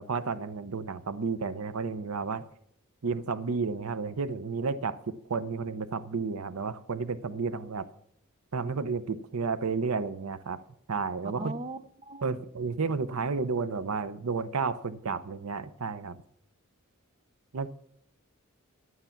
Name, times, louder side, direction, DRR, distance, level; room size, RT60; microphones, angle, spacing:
voice 1, 0.0-2.4 3.0-7.9 8.5-10.6 10.9-11.5 12.2-16.2 17.5-17.7, right 4 dB, 80° right, 0.7 m, -32 dB
voice 2, 11.4-12.4, right 2 dB, 30° right, 0.6 m, -39 dB
11.0 x 9.3 x 5.8 m
head